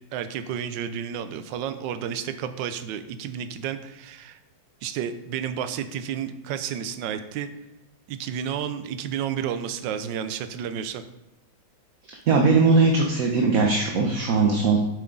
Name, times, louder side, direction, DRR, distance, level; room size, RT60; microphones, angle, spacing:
voice 1, 0.1-4.4 4.8-7.5 8.1-11.0, right 8 dB, 75° right, 10 dB, 1.3 m, -31 dB
voice 2, 12.3-14.8, right 4 dB, 55° right, 1 dB, 1.2 m, -20 dB
9.0 x 7.3 x 3.9 m, 0.92 s
omnidirectional pair, 2.1 m